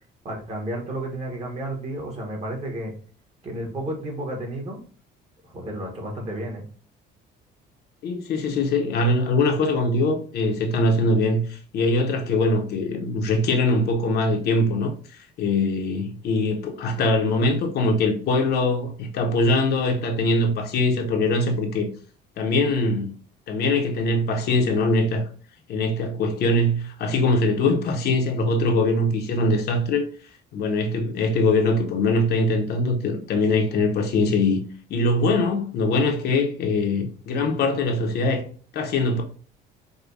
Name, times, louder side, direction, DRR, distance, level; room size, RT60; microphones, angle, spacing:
voice 1, 0.2-2.9 3.4-4.8 5.4-6.7, right 1 dB, 30° right, 1.1 m, -32 dB
voice 2, 8.0-21.9 22.4-23.2 23.5-25.2 25.7-30.0 30.5-34.6 34.9-38.5 38.7-39.2, left 2 dB, 55° left, 0.8 m, -22 dB
4.8 x 2.2 x 2.5 m
cardioid pair, 125°, 20 cm